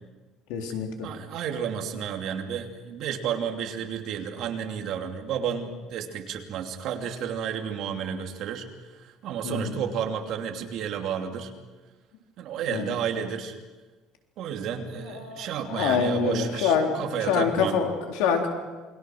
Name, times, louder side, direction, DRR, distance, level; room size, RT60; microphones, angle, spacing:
voice 1, 0.5-1.1 9.4-9.8 12.7-12.9 15.1-18.5, left 6 dB, 90° left, 3 dB, 3.9 m, -26 dB
voice 2, 1.0-8.6 8.9-11.5 12.4-13.5 14.4-17.8, right 8 dB, 55° right, 4 dB, 2.8 m, -31 dB
28.0 x 22.5 x 6.4 m, 1.3 s
cardioid pair, 155°, 0 cm